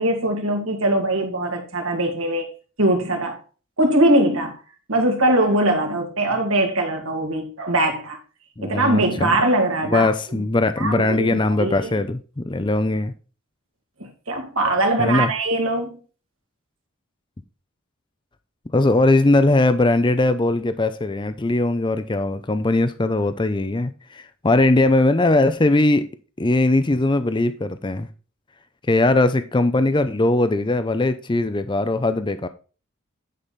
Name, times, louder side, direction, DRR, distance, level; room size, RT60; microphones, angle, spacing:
voice 1, 0.0-2.5 2.8-3.4 3.8-4.6 4.9-8.2 8.6-10.1 10.8-11.9 14.0-16.0, right 1 dB, 70° right, 2.4 m, -21 dB
voice 2, 8.6-9.4 9.8-13.1 15.0-15.3 18.7-26.1 26.4-28.1 28.9-32.5, left 2 dB, 20° left, 0.5 m, -20 dB
10.0 x 5.5 x 4.1 m
head